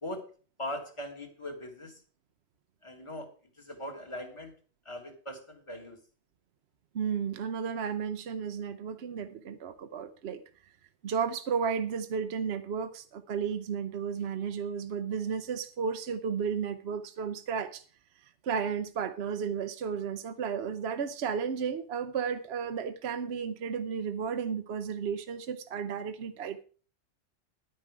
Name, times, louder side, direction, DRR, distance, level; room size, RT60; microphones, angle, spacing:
voice 1, 0.6-2.0 2.8-4.6 4.9-6.0, left 1 dB, 25° left, 5 dB, 1.9 m, -40 dB
voice 2, 6.9-10.4 11.0-17.8 18.4-26.6, right 6 dB, 65° right, 9 dB, 1.0 m, -33 dB
10.5 x 9.8 x 4.8 m, 0.39 s
omnidirectional pair, 1.2 m